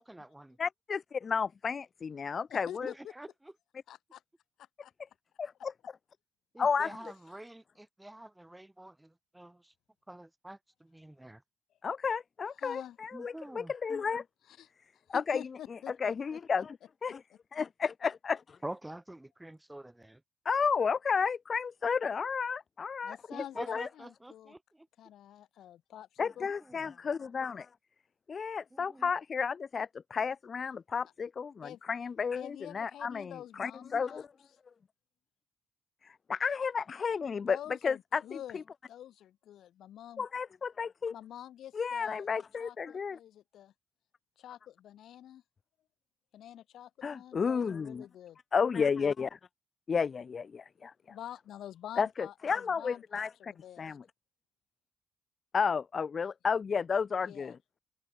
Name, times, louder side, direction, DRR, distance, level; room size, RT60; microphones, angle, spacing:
voice 1, 0.0-0.6 3.0-3.3 6.5-9.7 10.1-11.4 13.1-13.7 18.6-20.2 23.3-24.9 26.4-26.9 28.7-29.1, right 1 dB, 10° right, 7.1 m, -47 dB
voice 2, 0.6-2.9 5.4-5.7 6.6-7.0 11.8-14.2 15.1-16.8 17.0-17.2 17.5-18.6 20.4-23.2 23.6-23.9 26.2-27.7 28.3-34.3 36.0-37.6 37.8-38.6 40.2-41.1 41.7-43.2 47.0-48.0 48.5-49.4 49.9-50.9 52.0-53.5 53.8-54.0 55.5-57.6, left 6 dB, 40° left, 1.3 m, -32 dB
voice 3, 2.5-3.1 3.9-4.2 4.8-4.9 12.6-13.0 14.5-14.7 15.1-16.4 17.3-17.4 23.0-24.5 25.0-26.5 31.6-31.8 32.3-34.3 37.3-38.6 38.9-40.3 41.1-43.7 44.4-45.4 46.3-48.4 51.1-54.0 57.2-57.5, left 11 dB, 75° left, 5.7 m, -47 dB
open air
cardioid pair, 90°, 0 cm